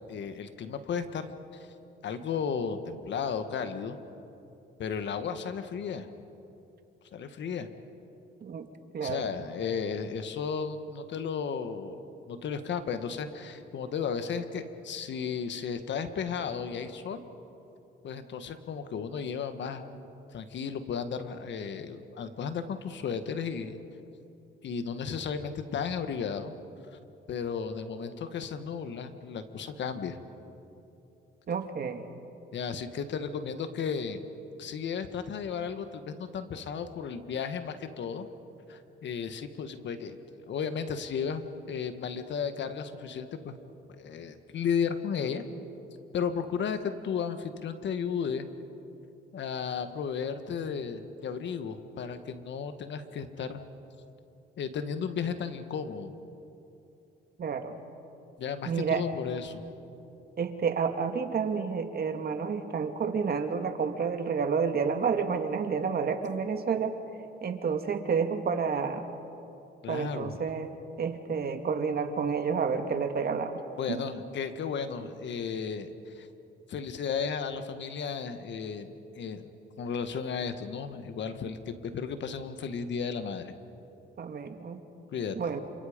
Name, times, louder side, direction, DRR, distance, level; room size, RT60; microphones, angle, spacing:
voice 1, 0.1-1.3 2.0-4.0 4.8-6.1 7.1-7.7 9.0-17.2 18.0-20.0 20.3-23.8 24.6-26.5 27.3-30.2 32.5-34.2 34.6-38.3 38.7-40.2 40.5-43.6 43.9-45.4 46.1-48.5 49.3-53.6 54.6-56.1 58.4-59.6 69.8-70.3 73.8-75.9 76.1-76.3 76.7-79.5 79.8-83.5 85.1-85.5, left 6 dB, 65° left, 9 dB, 1.6 m, -34 dB
voice 2, 8.9-9.3 31.5-32.1 57.4-57.8 58.7-59.0 60.4-67.0 67.4-69.1 69.9-70.7 71.0-73.6 73.9-74.1 84.2-84.8 85.4-85.6, right 6 dB, 50° right, 6 dB, 2.0 m, -30 dB
28.0 x 27.0 x 5.2 m, 2.8 s
cardioid pair, 90°, 20 cm